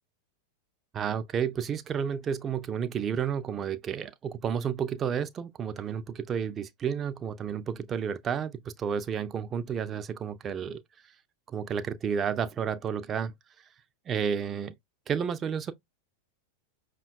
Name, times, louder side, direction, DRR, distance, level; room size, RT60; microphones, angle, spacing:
voice 1, 0.9-10.8 11.5-13.3 14.1-14.7 15.1-15.7, right 7 dB, 25° right, 0.3 m, -31 dB
5.5 x 2.2 x 2.2 m
figure-of-eight pair, 90°, 0 cm